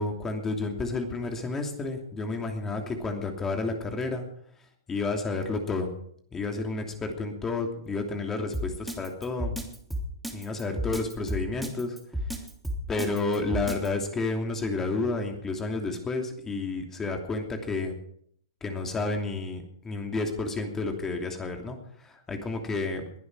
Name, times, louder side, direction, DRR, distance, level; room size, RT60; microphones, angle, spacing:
voice 1, 0.0-4.2 4.9-5.9 6.3-9.5 10.3-12.0 12.9-17.9 18.6-23.0, left 3 dB, 15° left, 3 dB, 2.9 m, -31 dB
Drum kit, 8.5-13.9, equal, ahead, 3.0 m, -32 dB
21.0 x 11.5 x 4.9 m, 0.65 s
hypercardioid pair, 125°, 2 cm